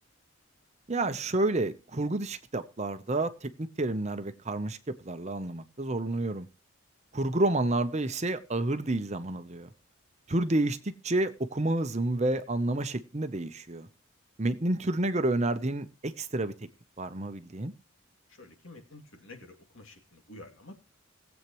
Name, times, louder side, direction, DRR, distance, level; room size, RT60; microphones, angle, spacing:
voice 1, 0.9-6.5 7.1-9.7 10.3-13.9 14.4-16.5 17.0-17.7, right 2 dB, 30° right, 10 dB, 0.8 m, -29 dB
voice 2, 18.3-20.7, left 2 dB, 70° left, 4 dB, 2.5 m, -49 dB
19.5 x 8.1 x 3.1 m, 0.34 s
head